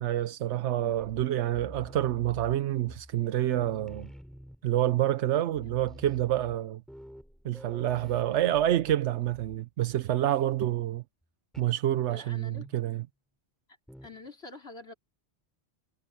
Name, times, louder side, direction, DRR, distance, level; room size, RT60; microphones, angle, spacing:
voice 1, 0.0-4.1 4.6-6.8 7.4-11.0 11.6-13.0, right 12 dB, 90° right, 0.9 m, -28 dB
sound 1, 1.0-3.3 3.5-4.9 5.2-5.3 5.5-9.6 9.9-10.2 11.5-11.8 12.5-13.0 13.9-14.3, equal, ahead, 3.2 m, -48 dB
voice 2, 12.1-12.7 14.0-14.9, left 3 dB, 65° left, 4.1 m, -46 dB
omnidirectional pair, 1.2 m